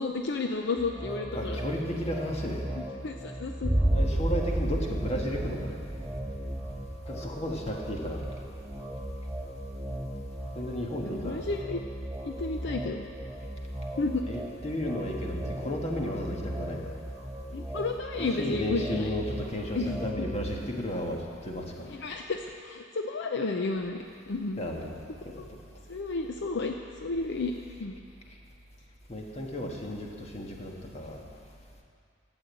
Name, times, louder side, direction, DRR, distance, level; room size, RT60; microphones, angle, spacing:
voice 1, 0.0-1.6 3.0-3.7 11.1-11.8 12.2-13.1 14.0-14.2 17.5-19.1 19.7-20.0 21.9-24.0 24.3-24.6 25.4-25.5 25.9-26.7 27.0-27.5 27.8-27.9, left 3 dB, 60° left, 4 dB, 0.6 m, -32 dB
sound 1, 0.8-20.4, right 1 dB, ahead, 2.2 m, -38 dB
voice 2, 1.3-2.6 3.9-5.8 7.1-8.2 10.5-11.4 14.2-17.0 18.2-21.9 24.6-25.0 29.1-31.2, equal, 35° left, 0 dB, 1.6 m, -34 dB
sound 2, 3.6-11.0, right 1 dB, 20° right, 1.5 m, -32 dB
13.0 x 8.1 x 8.2 m, 2.3 s
head